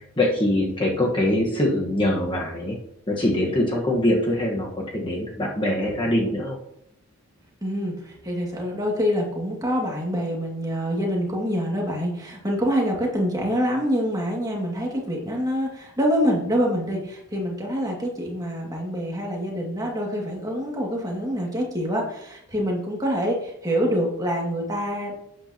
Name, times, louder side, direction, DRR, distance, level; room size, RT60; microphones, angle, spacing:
voice 1, 0.0-2.8 3.1-6.6, left 1 dB, 20° left, -2 dB, 1.3 m, -23 dB
voice 2, 7.6-25.1, equal, 15° right, -1 dB, 2.1 m, -26 dB
12.0 x 8.8 x 2.9 m, 0.78 s
head